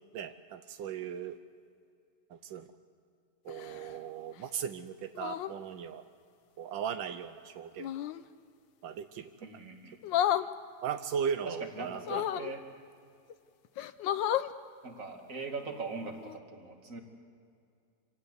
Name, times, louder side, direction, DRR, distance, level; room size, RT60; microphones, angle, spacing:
voice 1, 0.1-1.4 2.3-2.6 3.4-6.0 6.6-7.9 8.8-9.3 10.8-12.5, right 7 dB, 90° right, 9 dB, 1.5 m, -37 dB
sound 1, 3.5-4.0 5.1-5.6 7.8-8.2 10.0-10.5 12.0-12.5 13.3-13.4 13.8-14.5 16.2-16.4, left 11 dB, 85° left, 1.5 m, -32 dB
voice 2, 9.4-10.0 11.4-12.6 14.8-17.0, right 3 dB, 45° right, 3 dB, 2.6 m, -41 dB
26.0 x 17.5 x 8.2 m, 2.4 s
omnidirectional pair, 2.0 m